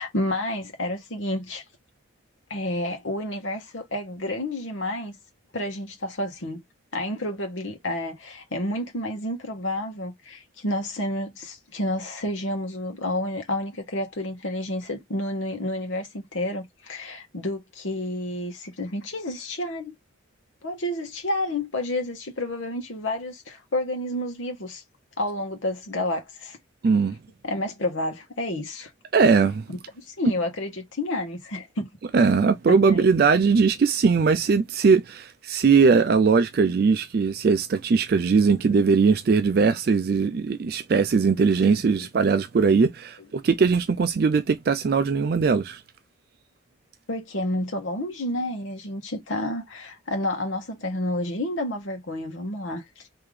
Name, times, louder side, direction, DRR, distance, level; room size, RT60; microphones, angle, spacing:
voice 1, 0.0-1.6 2.5-5.2 5.5-6.6 6.9-19.9 20.6-24.8 25.2-26.6 27.4-28.9 29.7-31.9 32.9-33.1 41.6-41.8 47.1-53.0, left 1 dB, 80° left, 1.2 m, -30 dB
voice 2, 26.8-27.2 29.1-29.6 32.1-45.8, right 5 dB, 50° right, 0.3 m, -20 dB
3.8 x 2.8 x 3.2 m
head